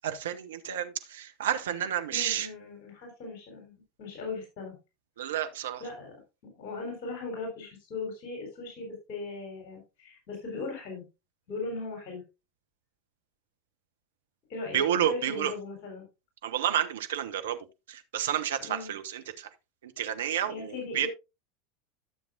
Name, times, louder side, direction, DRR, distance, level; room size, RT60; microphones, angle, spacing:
voice 1, 0.0-2.5 5.2-5.8 14.7-15.5 16.4-17.6 17.9-19.5 19.8-21.1, right 10 dB, 65° right, 1.1 m, -30 dB
voice 2, 2.1-3.7 4.0-4.7 5.8-6.1 6.4-11.0 11.5-12.2 14.5-16.1 18.6-18.9 20.5-21.1, left 3 dB, 50° left, 3.9 m, -38 dB
13.0 x 7.2 x 2.5 m
figure-of-eight pair, 80°, 0 cm